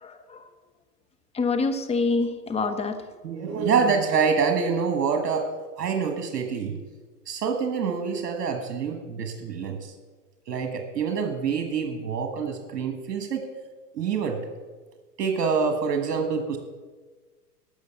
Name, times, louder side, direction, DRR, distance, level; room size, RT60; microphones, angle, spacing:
voice 1, 0.0-0.4 1.3-3.0, left 3 dB, 15° left, 6 dB, 0.9 m, -26 dB
voice 2, 3.2-5.5 5.8-6.8 7.3-9.9 10.5-13.5 13.9-14.4 15.2-16.6, right 5 dB, 70° right, 5 dB, 1.5 m, -26 dB
12.5 x 6.3 x 6.9 m, 1.4 s
hypercardioid pair, 115°, 48 cm